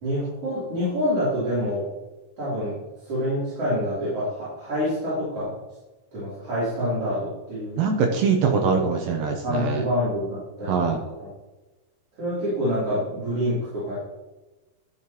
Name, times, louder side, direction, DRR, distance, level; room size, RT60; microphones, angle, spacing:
voice 1, 0.0-1.9 2.4-5.6 6.1-7.8 9.4-11.3 12.2-14.0, equal, 35° right, -12 dB, 4.1 m, -27 dB
voice 2, 7.8-9.9 10.7-11.0, right 5 dB, 75° right, 3 dB, 2.1 m, -23 dB
12.5 x 6.5 x 3.0 m, 1.1 s
omnidirectional pair, 4.7 m